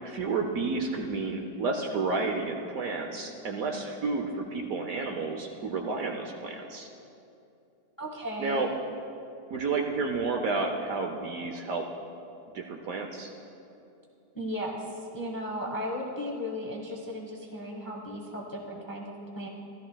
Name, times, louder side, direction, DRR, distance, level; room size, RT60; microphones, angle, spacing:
voice 1, 0.0-6.9 8.4-8.7 9.5-11.9 12.5-13.3, right 4 dB, 65° right, 3 dB, 1.0 m, -31 dB
voice 2, 8.0-8.7 14.3-14.8 15.1-19.5, equal, 15° left, -1 dB, 0.8 m, -35 dB
15.5 x 13.0 x 2.3 m, 2.6 s
omnidirectional pair, 1.9 m